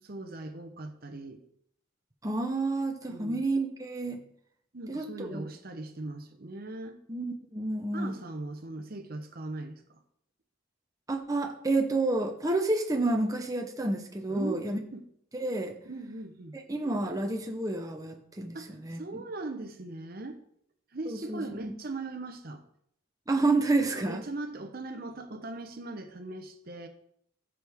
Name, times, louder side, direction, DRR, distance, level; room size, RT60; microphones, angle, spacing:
voice 1, 0.1-1.4 3.1-3.4 4.7-7.0 7.9-10.0 14.3-15.0 15.9-16.6 18.5-20.4 20.9-22.6 23.9-26.9, right 2 dB, 45° right, 7 dB, 0.9 m, -39 dB
voice 2, 2.2-4.2 4.9-5.5 7.1-8.1 11.1-14.8 15.4-15.7 16.7-19.2 21.1-21.7 23.3-24.2, right 2 dB, 15° right, 3 dB, 0.8 m, -29 dB
14.5 x 6.3 x 3.6 m, 0.70 s
head